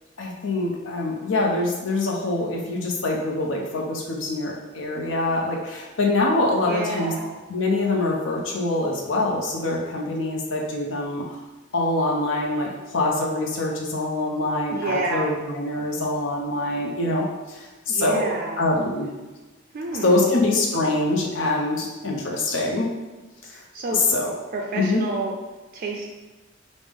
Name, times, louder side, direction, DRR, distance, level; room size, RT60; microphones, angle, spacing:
voice 1, 0.2-7.1 7.5-11.2 11.7-19.1 20.0-22.9 23.5-23.6 23.9-24.4 24.7-25.0, left 2 dB, 70° left, -1 dB, 0.6 m, -24 dB
voice 2, 6.6-7.4 14.7-15.3 17.9-18.6 19.7-20.3 23.5-24.1 24.5-25.3 25.7-26.0, right 3 dB, 50° right, 0 dB, 0.4 m, -29 dB
5.0 x 2.0 x 3.4 m, 1.2 s
head